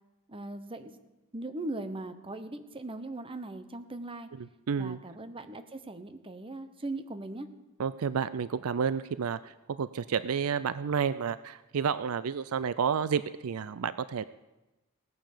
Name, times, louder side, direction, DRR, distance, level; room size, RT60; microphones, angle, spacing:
voice 1, 0.3-1.0 1.3-4.3 4.8-7.5, right 2 dB, 25° right, 9 dB, 1.0 m, -39 dB
voice 2, 4.7-5.0 7.8-14.2, right 6 dB, 75° right, 15 dB, 0.4 m, -30 dB
18.0 x 9.4 x 6.7 m, 1.0 s
head